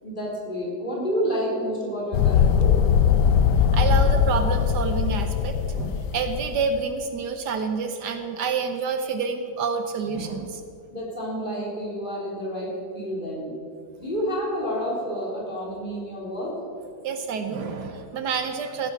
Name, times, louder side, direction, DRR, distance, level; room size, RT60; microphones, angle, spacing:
voice 1, 0.0-2.8 10.9-13.5 14.0-16.6, equal, 25° left, -5 dB, 3.8 m, -29 dB
sound 1, 2.1-6.6, left 7 dB, 80° left, 1.2 m, -20 dB
voice 2, 3.7-10.6 17.0-18.9, right 5 dB, 70° right, 7 dB, 1.4 m, -28 dB
15.5 x 9.4 x 5.9 m, 2.5 s
omnidirectional pair, 1.9 m